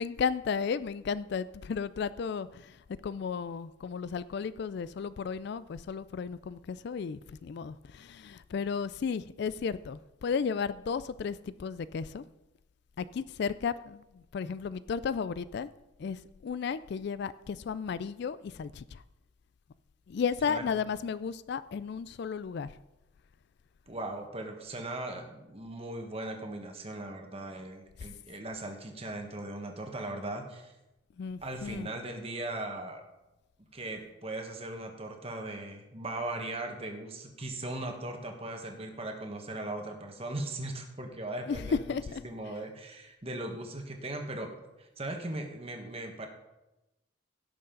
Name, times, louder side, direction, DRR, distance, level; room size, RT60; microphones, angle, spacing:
voice 1, 0.0-12.2 13.0-15.7 16.0-19.0 20.1-22.7 28.0-28.1 31.2-31.9 41.5-41.6 41.9-42.2, left 6 dB, 55° left, 16 dB, 0.3 m, -34 dB
voice 2, 23.9-30.7 31.4-33.0 33.7-44.5 44.8-46.3, right 2 dB, 30° right, 4 dB, 1.4 m, -38 dB
17.0 x 6.6 x 3.9 m, 0.99 s
head